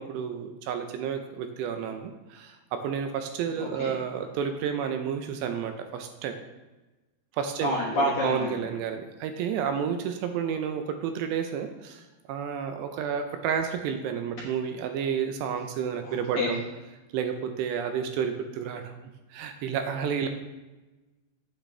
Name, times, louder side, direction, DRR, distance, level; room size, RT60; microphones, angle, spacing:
voice 1, 0.0-6.4 7.3-16.6 17.1-18.9 19.3-20.3, right 7 dB, 80° right, 6 dB, 2.6 m, -31 dB
voice 2, 3.6-3.9 7.6-8.5 16.0-16.5, left 1 dB, 65° left, -5 dB, 2.0 m, -28 dB
8.7 x 7.9 x 3.3 m, 1.1 s
omnidirectional pair, 5.2 m